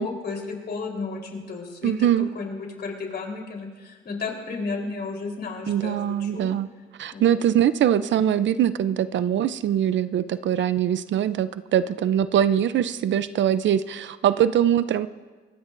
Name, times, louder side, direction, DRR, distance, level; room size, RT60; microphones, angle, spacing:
voice 1, 0.0-6.5 7.1-7.4, left 4 dB, 50° left, 0 dB, 4.0 m, -33 dB
voice 2, 1.8-2.3 5.7-6.7 7.0-15.1, right 10 dB, 65° right, 13 dB, 0.6 m, -22 dB
25.0 x 19.0 x 2.6 m, 1.4 s
cardioid pair, 80°, 21 cm